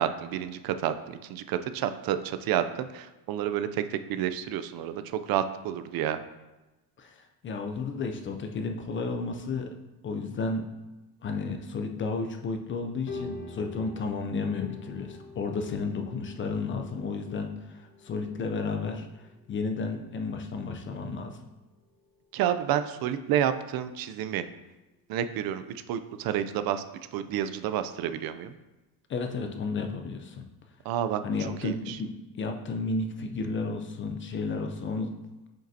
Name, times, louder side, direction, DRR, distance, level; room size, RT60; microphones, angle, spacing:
voice 1, 0.0-6.2 22.3-24.4 25.1-26.8 27.1-28.5 30.8-31.2 31.6-32.0, right 10 dB, 65° right, 11 dB, 0.5 m, -30 dB
voice 2, 7.0-9.7 10.0-10.7 11.2-21.4 29.1-30.4 31.2-32.1 32.4-35.1, left 4 dB, 30° left, 5 dB, 0.4 m, -32 dB
sound 1, 13.1-22.4 22.8-23.2 23.6-23.7 24.3-24.4, left 3 dB, 50° left, 1.3 m, -46 dB
7.5 x 5.0 x 2.7 m, 1.1 s
cardioid pair, 155°, 39 cm